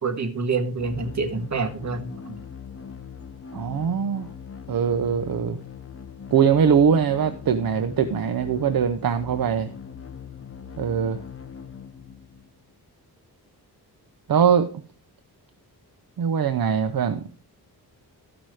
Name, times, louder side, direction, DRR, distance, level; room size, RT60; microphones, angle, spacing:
voice 1, 0.0-2.4, right 4 dB, 45° right, 5 dB, 1.6 m, -27 dB
sound 1, 0.8-12.7, left 7 dB, 35° left, 0.8 m, -41 dB
voice 2, 3.5-4.3 4.7-5.6 6.3-9.7 10.8-11.2 14.3-14.7 16.2-17.2, right 7 dB, 60° right, 8 dB, 0.8 m, -22 dB
13.5 x 6.1 x 4.8 m, 0.38 s
wide cardioid pair, 115°, 39 cm